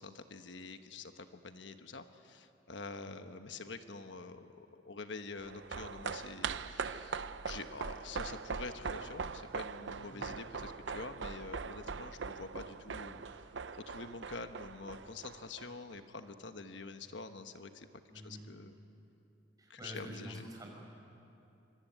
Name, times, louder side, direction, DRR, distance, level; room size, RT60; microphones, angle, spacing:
voice 1, 0.0-13.2 13.5-17.9 18.2-18.8 19.7-20.4, left 3 dB, 85° left, 8 dB, 1.2 m, -47 dB
sound 1, 5.4-16.0 16.2-16.3, right 5 dB, 85° right, 0.7 m, -41 dB
voice 2, 10.0-10.3 18.1-18.5 19.6-20.8, equal, 20° right, 0 dB, 5.9 m, -47 dB
25.0 x 23.0 x 9.3 m, 2.8 s
head